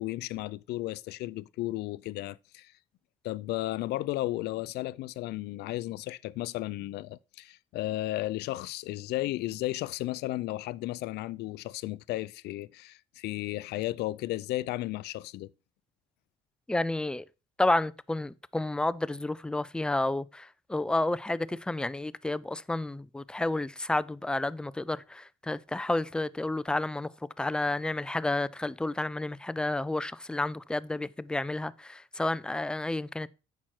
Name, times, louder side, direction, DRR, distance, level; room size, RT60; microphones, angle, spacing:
voice 1, 0.0-2.7 3.2-15.5, left 17 dB, 75° left, 0.5 m, -34 dB
voice 2, 16.7-17.3 17.6-33.3, left 2 dB, 5° left, 0.3 m, -31 dB
8.9 x 6.0 x 4.5 m
cardioid pair, 110°, 17 cm